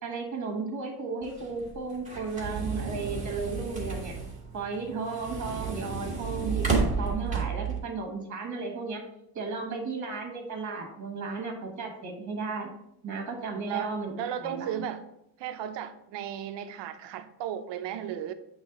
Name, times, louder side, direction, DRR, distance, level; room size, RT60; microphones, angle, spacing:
voice 1, 0.0-4.1 4.5-6.7 7.0-9.0 9.3-14.9, right 4 dB, 45° right, 1.3 m, -34 dB
sound 1, 1.2-7.8, right 5 dB, 20° right, 1.4 m, -32 dB
voice 2, 13.6-15.0 15.4-18.3, right 9 dB, 80° right, 0.6 m, -35 dB
8.1 x 3.2 x 3.9 m
cardioid pair, 165°, 42 cm